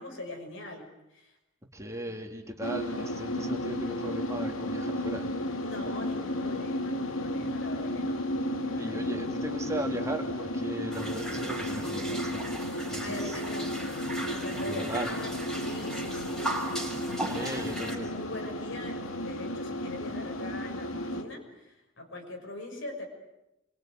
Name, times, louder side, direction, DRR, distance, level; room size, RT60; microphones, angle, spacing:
voice 1, 0.0-1.4 5.6-8.2 8.7-9.2 13.0-13.9 14.2-16.6 17.1-23.1, left 2 dB, 60° left, 3 dB, 6.2 m, -42 dB
voice 2, 1.7-5.3 8.8-12.6 12.9-13.4 14.6-15.1 17.1-18.1, right 1 dB, 15° right, 2 dB, 2.8 m, -37 dB
sound 1, 2.6-21.2, left 1 dB, 85° left, 2.5 m, -33 dB
sound 2, 10.9-17.9, right 1 dB, ahead, 5.2 m, -37 dB
25.5 x 24.0 x 9.3 m, 0.93 s
head